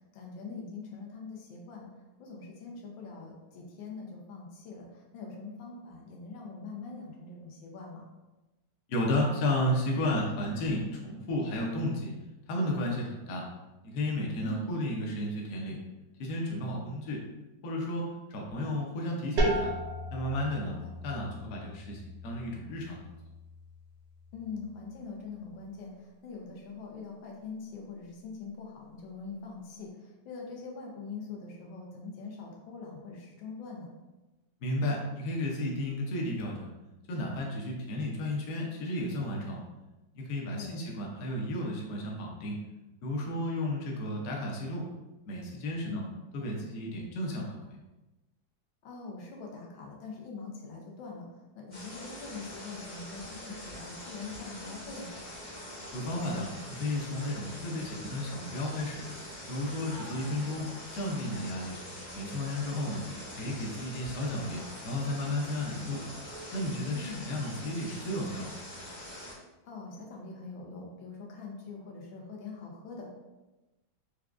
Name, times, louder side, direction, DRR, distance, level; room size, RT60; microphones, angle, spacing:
voice 1, 0.1-1.9 2.2-8.0 14.4-14.7 20.7-20.9 24.3-33.9 40.5-40.8 45.8-46.1 48.8-51.3 51.5-55.1 62.7-63.0 66.9-67.2 69.7-73.1, left 4 dB, 85° left, -1 dB, 1.5 m, -43 dB
voice 2, 8.9-12.1 12.5-13.4 13.8-15.8 16.2-17.2 17.6-18.0 18.3-19.7 20.1-20.7 21.0-23.0 34.6-36.7 37.1-39.6 40.1-42.6 43.0-44.9 45.3-46.0 46.3-47.8 55.9-59.0 59.5-60.7 60.9-61.8 62.1-63.0 63.4-66.0 66.5-68.6, left 1 dB, 65° left, -1 dB, 1.0 m, -33 dB
sound 1, 19.4-24.9, right 1 dB, 70° right, 0.9 m, -35 dB
sound 2, 51.7-69.3, left 1 dB, 35° left, 0.8 m, -44 dB
4.7 x 2.3 x 2.4 m, 1.1 s
omnidirectional pair, 2.0 m